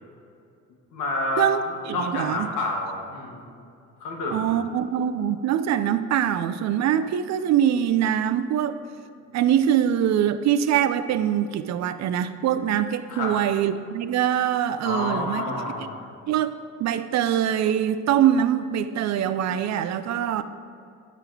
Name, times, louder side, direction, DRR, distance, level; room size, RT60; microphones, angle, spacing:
voice 1, 0.9-1.5 1.9-3.5 4.0-4.6 13.1-13.3 14.8-16.1, left 2 dB, 85° left, -1 dB, 1.4 m, -29 dB
voice 2, 1.9-2.5 4.3-8.8 9.3-15.4 15.8-15.9 16.3-16.5 16.8-20.4, right 10 dB, 65° right, 11 dB, 0.4 m, -23 dB
8.3 x 3.9 x 4.6 m, 2.5 s
cardioid pair, 90°, 30 cm